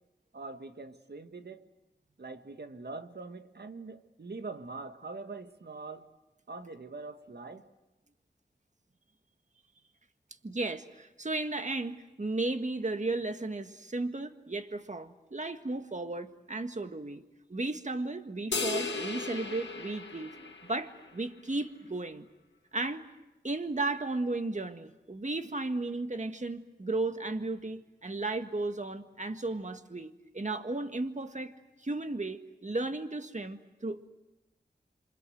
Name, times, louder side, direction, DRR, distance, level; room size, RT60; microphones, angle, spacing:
voice 1, 0.3-1.6 2.2-6.1 6.5-7.7, right 3 dB, 65° right, 8 dB, 1.7 m, -43 dB
voice 2, 10.4-17.2 17.5-20.4 20.6-22.3 22.7-23.0 23.4-34.1, right 2 dB, 40° right, 8 dB, 1.8 m, -34 dB
sound 1, 18.5-21.1, left 4 dB, 90° left, 1.9 m, -36 dB
27.0 x 26.0 x 8.0 m, 1.0 s
cardioid pair, 40°, 18 cm